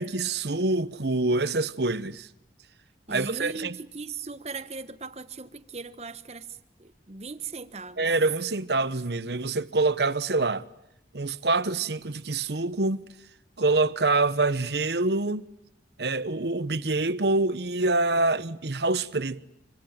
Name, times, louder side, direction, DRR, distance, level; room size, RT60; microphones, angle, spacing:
voice 1, 0.0-2.3 3.1-3.8 8.0-10.6 11.1-13.0 13.6-15.4 16.0-19.4, right 3 dB, 70° right, 1.1 m, -26 dB
voice 2, 3.1-6.5 6.8-8.1, right 4 dB, 35° right, 1.3 m, -38 dB
26.0 x 25.0 x 9.0 m
head